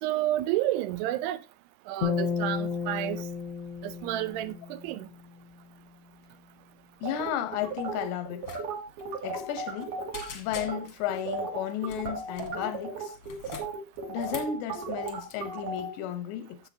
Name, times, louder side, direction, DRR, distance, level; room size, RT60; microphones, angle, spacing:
voice 1, 0.0-1.4 1.9-3.2 3.8-5.1, right 14 dB, 80° right, 2.7 m, -30 dB
sound 1, 2.0-5.4, left 6 dB, 40° left, 1.1 m, -33 dB
voice 2, 7.0-8.5 9.2-10.0 10.3-13.1 14.1-16.6, left 10 dB, 85° left, 3.1 m, -33 dB
sound 2, 7.0-10.2 10.6-10.8 11.1-15.9, right 4 dB, 65° right, 4.0 m, -35 dB
sound 3, 8.4-8.6 8.9-9.0 9.4-9.8 10.1-11.0 11.9-12.6 13.1-14.6 15.0-15.3, left 5 dB, 55° left, 1.5 m, -43 dB
11.5 x 7.5 x 2.8 m
omnidirectional pair, 4.8 m